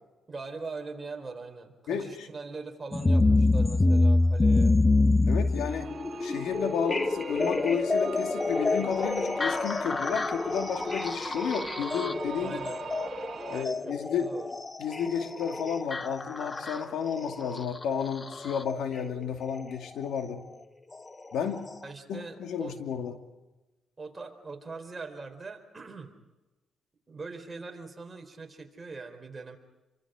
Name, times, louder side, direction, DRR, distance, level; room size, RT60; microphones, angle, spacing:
voice 1, 0.3-4.8 12.3-12.8 13.4-14.5 17.3-17.4 21.8-22.8 24.0-26.1 27.1-29.6, right 4 dB, 25° right, 3 dB, 4.0 m, -41 dB
sound 1, 2.9-18.8 20.0-20.1 20.9-21.0 21.7-21.8, left 2 dB, 25° left, 0.9 m, -27 dB
voice 2, 5.2-5.9 6.2-12.6 13.5-14.3 14.8-20.5 21.3-21.7 22.1-23.2, left 7 dB, 90° left, 5 dB, 2.5 m, -32 dB
sound 2, 5.6-13.6, right 6 dB, 50° right, 1.2 m, -43 dB
29.0 x 24.5 x 5.1 m, 1.1 s
cardioid pair, 110°, 0 cm